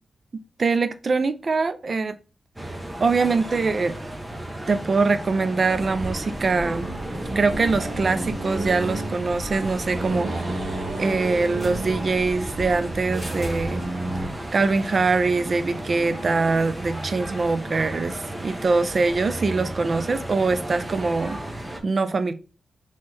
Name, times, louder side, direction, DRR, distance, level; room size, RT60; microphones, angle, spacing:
voice 1, 0.6-2.1 3.0-3.9 4.7-6.9 7.4-10.3 11.0-13.8 14.5-21.4 21.8-22.3, right 4 dB, 55° right, 0.5 m, -23 dB
sound 1, 2.6-21.8, right 1 dB, 15° right, 1.0 m, -34 dB
Accelerating revving vroom, 5.6-14.3, right 2 dB, 70° right, 1.3 m, -32 dB
4.3 x 3.2 x 3.5 m
cardioid pair, 75°, 0 cm